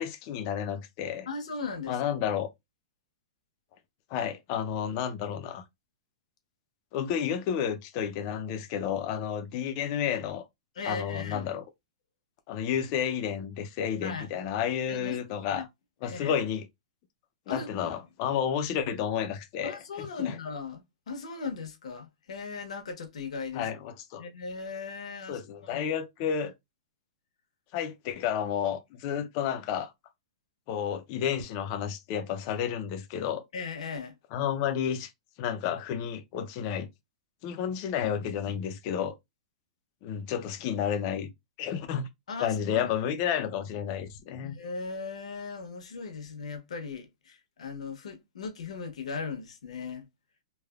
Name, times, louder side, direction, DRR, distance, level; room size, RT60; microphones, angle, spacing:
voice 1, 0.0-1.3 1.9-2.5 4.1-5.6 6.9-10.4 10.8-11.6 12.5-15.7 16.0-16.6 17.5-20.4 23.5-24.2 25.3-26.5 27.7-29.9 30.7-33.4 34.3-35.1 35.4-36.9 37.4-39.1 40.0-41.3 41.6-42.1 42.4-44.5, left 8 dB, 30° left, 0.4 m, -31 dB
voice 2, 1.3-2.0 10.8-11.5 14.0-14.3 14.9-15.2 15.5-15.6 16.0-16.4 17.5-17.9 19.6-23.7 24.2-25.9 26.3-26.4 33.5-34.2 42.3-42.9 44.4-50.0, left 5 dB, 85° left, 0.9 m, -38 dB
3.2 x 2.1 x 2.3 m
hypercardioid pair, 170°, 3 cm